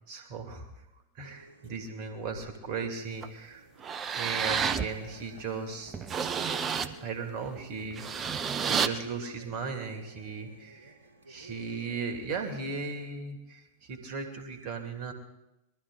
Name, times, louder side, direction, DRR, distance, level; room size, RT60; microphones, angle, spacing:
voice 1, 0.1-0.7 1.2-3.6 4.1-5.9 7.0-8.3 8.6-10.9 11.3-15.1, right 4 dB, 45° right, 5 dB, 2.4 m, -37 dB
sound 1, 1.2-13.1, right 1 dB, 70° right, 2.1 m, -53 dB
sound 2, 3.2-3.3 3.8-4.9 5.4-5.5 5.9-6.9 7.8-8.9, right 7 dB, 25° right, 0.7 m, -30 dB
21.5 x 13.0 x 3.9 m, 0.92 s
figure-of-eight pair, 90°, 0 cm